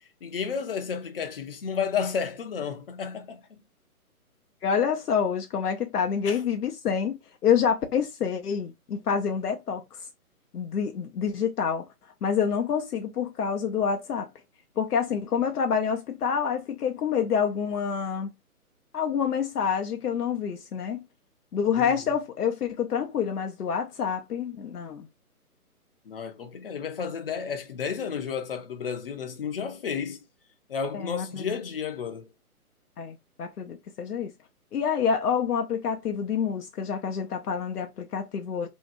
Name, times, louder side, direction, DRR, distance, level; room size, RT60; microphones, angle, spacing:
voice 1, 0.2-3.6 6.3-6.4 21.7-22.0 26.1-30.2 30.7-32.3, left 6 dB, 40° left, 0.5 m, -32 dB
voice 2, 4.6-10.0 10.5-11.9 12.2-14.3 14.8-18.3 18.9-21.0 21.5-25.1 30.9-31.5 33.0-34.3 34.7-38.7, left 7 dB, 85° left, 0.6 m, -27 dB
2.7 x 2.2 x 2.4 m
figure-of-eight pair, 140°, 45 cm